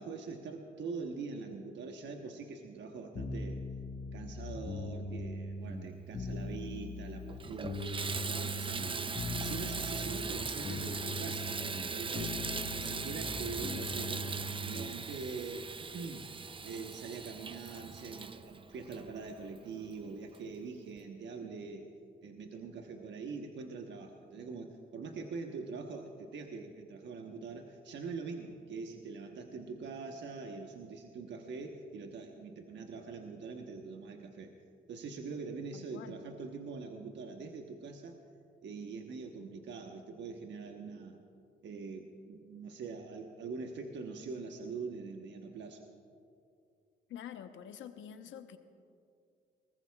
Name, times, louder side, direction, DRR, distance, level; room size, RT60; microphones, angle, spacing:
voice 1, 0.0-3.6 4.1-9.0 9.4-11.5 11.8-14.3 14.6-21.9 22.2-34.5 34.9-38.2 38.6-41.2 41.6-45.8, right 4 dB, 65° right, 3 dB, 1.2 m, -43 dB
sound 1, 3.1-15.0, left 2 dB, 45° left, 1.3 m, -41 dB
Water tap faucet / Bathtub (filling or washing), 6.7-6.8 7.3-19.7 20.3-20.4 21.0-21.1, right 4 dB, 25° right, 0.6 m, -39 dB
voice 2, 35.7-36.2 47.1-48.6, left 9 dB, 75° left, 8 dB, 1.0 m, -47 dB
22.0 x 19.5 x 2.4 m, 2.4 s
supercardioid pair, 70°, 20 cm